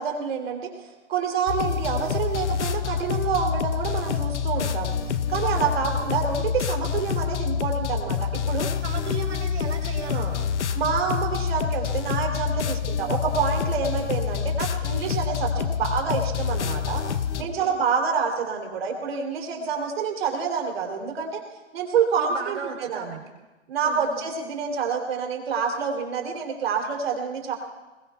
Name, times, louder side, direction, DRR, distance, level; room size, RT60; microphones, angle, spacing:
voice 1, 0.0-5.0 5.3-8.7 10.1-10.3 10.7-17.0 17.4-21.4 21.7-23.2 23.7-27.5, right 6 dB, 55° right, 2 dB, 3.2 m, -27 dB
sound 1, 1.5-17.4, left 7 dB, 75° left, 0.9 m, -27 dB
voice 2, 8.8-10.6 17.4-17.7 22.1-23.2 23.8-24.2, right 5 dB, 75° right, 2 dB, 4.0 m, -36 dB
22.5 x 21.0 x 2.3 m, 1.1 s
hypercardioid pair, 155°, 35 cm